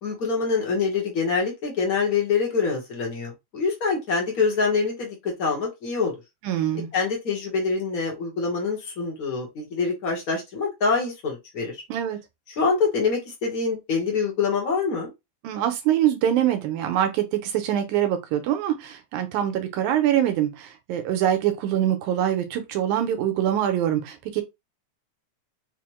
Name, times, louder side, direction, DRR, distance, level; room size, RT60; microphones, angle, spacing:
voice 1, 0.0-6.1 6.9-11.8 12.5-15.1, left 4 dB, 65° left, 0.8 m, -25 dB
voice 2, 6.4-6.9 11.9-12.2 15.4-24.4, right 11 dB, 85° right, 2.1 m, -24 dB
5.1 x 2.1 x 3.0 m
omnidirectional pair, 3.4 m